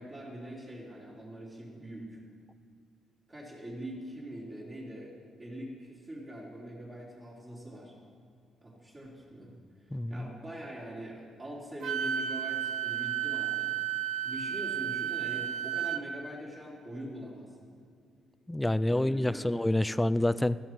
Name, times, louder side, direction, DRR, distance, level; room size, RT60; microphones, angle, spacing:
voice 1, 0.0-2.2 3.3-5.1 5.4-7.9 8.6-9.6 9.9-13.7 14.2-17.7 18.9-19.6, right 1 dB, 30° right, -6 dB, 3.9 m, -43 dB
voice 2, 9.9-10.3 18.5-20.6, left 1 dB, 10° left, 16 dB, 0.4 m, -27 dB
Wind instrument woodwind instrument, 11.8-16.0, right 10 dB, 65° right, 0.9 m, -32 dB
17.0 x 13.5 x 4.6 m, 2.3 s
cardioid pair, 90°, 0 cm